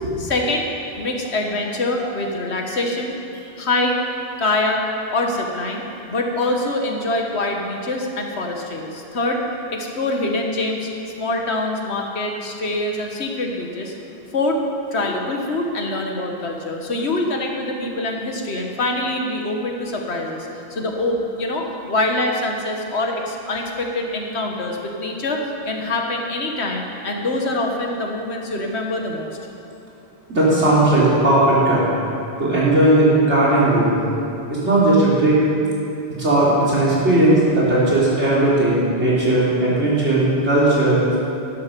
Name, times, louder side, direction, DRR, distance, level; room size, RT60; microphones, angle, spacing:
voice 1, 0.2-0.6 1.0-3.1 3.6-4.0 4.4-4.8 5.1-5.8 6.1-9.4 9.7-10.9 11.2-13.9 14.3-14.6 14.9-29.3, left 2 dB, 75° left, 2 dB, 1.7 m, -24 dB
voice 2, 30.3-31.9 32.4-33.9 34.5-35.4 36.2-41.2, right 1 dB, 90° right, -8 dB, 3.9 m, -17 dB
12.0 x 11.5 x 5.2 m, 2.8 s
omnidirectional pair, 1.1 m